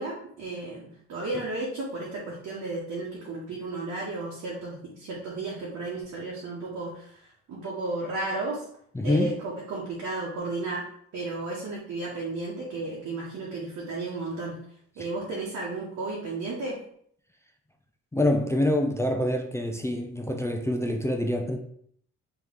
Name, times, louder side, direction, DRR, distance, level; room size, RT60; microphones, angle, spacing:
voice 1, 0.0-8.6 9.0-10.9 11.1-14.6 15.0-16.8, right 2 dB, 65° right, 1.1 m, -33 dB
voice 2, 9.0-9.3 18.1-21.6, left 1 dB, 10° left, 0.4 m, -26 dB
3.2 x 3.0 x 3.7 m
cardioid pair, 90°, 30 cm